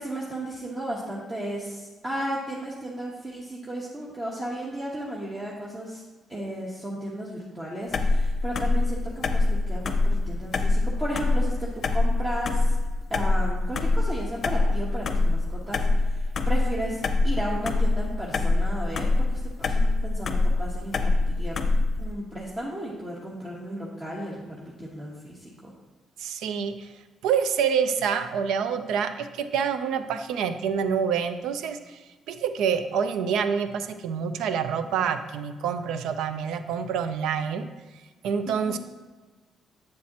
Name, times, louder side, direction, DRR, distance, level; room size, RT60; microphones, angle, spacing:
voice 1, 0.0-6.0 6.3-12.7 13.1-21.7 22.0-25.7 34.8-34.9 38.5-38.8, right 1 dB, 25° right, -4 dB, 1.2 m, -34 dB
sound 1, 7.9-22.1, left 2 dB, 50° left, 0.6 m, -24 dB
voice 2, 26.2-26.9 27.2-32.0 32.3-37.7 38.2-38.8, right 7 dB, 85° right, 10 dB, 0.4 m, -27 dB
7.6 x 7.3 x 2.9 m, 1.3 s
cardioid pair, 90°, 0 cm